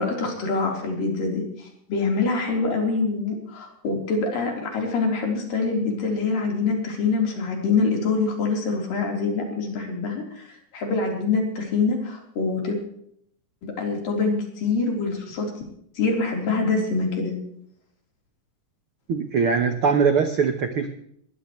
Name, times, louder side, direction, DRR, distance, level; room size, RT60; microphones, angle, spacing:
voice 1, 0.0-12.8 13.6-15.5 16.0-17.3, left 4 dB, 70° left, 1 dB, 5.7 m, -25 dB
voice 2, 19.1-20.9, right 6 dB, 70° right, 7 dB, 1.3 m, -21 dB
21.5 x 16.0 x 3.2 m, 0.68 s
omnidirectional pair, 4.1 m